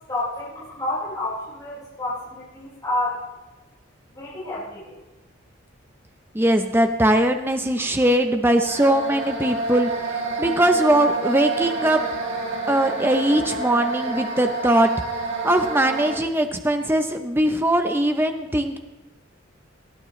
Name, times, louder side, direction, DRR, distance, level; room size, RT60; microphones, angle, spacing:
voice 1, 0.1-3.2 4.1-4.8, left 1 dB, 20° left, -9 dB, 4.7 m, -29 dB
voice 2, 6.3-12.0 12.7-14.9 15.2-18.8, right 1 dB, 10° right, 6 dB, 0.7 m, -21 dB
sound 1, 8.6-16.2, right 3 dB, 85° right, 4.2 m, -28 dB
19.0 x 13.5 x 3.2 m, 1.1 s
head